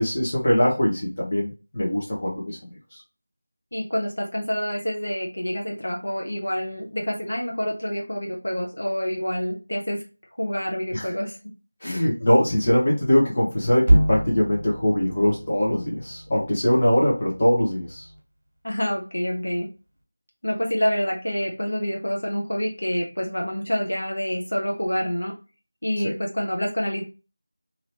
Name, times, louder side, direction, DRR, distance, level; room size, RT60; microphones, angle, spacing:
voice 1, 0.0-2.6 2.9-3.0 10.9-11.0 11.8-18.1 26.0-26.1, left 1 dB, 40° left, -4 dB, 1.0 m, -22 dB
voice 2, 3.7-10.0 10.4-11.4 11.8-12.0 18.6-19.7 20.4-25.3 25.8-27.0, equal, 80° left, 0 dB, 0.8 m, -27 dB
sound 1, 13.9-18.2, right 1 dB, 25° right, 1.2 m, -26 dB
2.9 x 2.8 x 2.9 m, 0.32 s
figure-of-eight pair, 170°, 0 cm